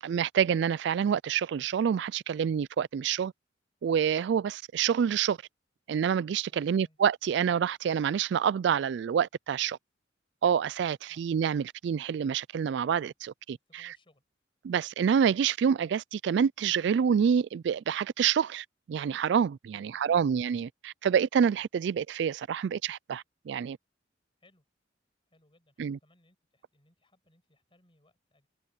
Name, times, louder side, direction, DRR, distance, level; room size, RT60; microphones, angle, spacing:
voice 1, 0.0-3.3 3.8-5.4 5.9-9.8 10.4-13.9 14.6-23.8 25.8-26.0, right 7 dB, 65° right, 0.3 m, -27 dB
voice 2, 6.5-7.0 11.1-11.2 13.7-14.2 19.7-20.2 24.4-24.6 25.3-28.5, left 1 dB, 30° left, 7.9 m, -66 dB
head